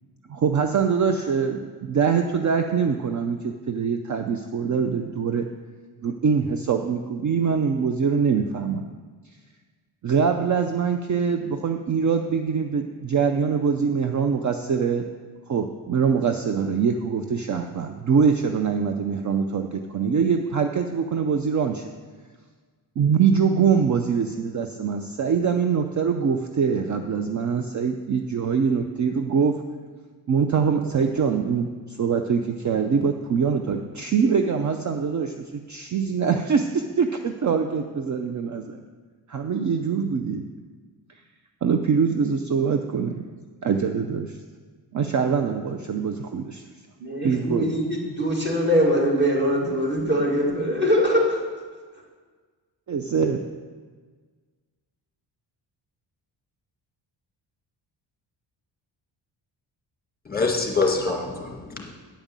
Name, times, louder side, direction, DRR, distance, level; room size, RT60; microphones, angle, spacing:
voice 1, 0.3-5.5 6.0-8.8 10.0-15.0 15.5-21.9 23.0-29.6 30.3-38.8 39.3-40.4 41.6-43.2 43.6-44.4 44.9-46.6 47.2-47.7 52.9-53.4, right 6 dB, 40° right, 6 dB, 0.6 m, -23 dB
voice 2, 47.0-51.4, equal, 25° right, -2 dB, 2.5 m, -22 dB
voice 3, 60.2-61.9, left 3 dB, 20° left, 1 dB, 1.7 m, -25 dB
10.0 x 5.2 x 7.3 m, 1.5 s
cardioid pair, 110°, 45 cm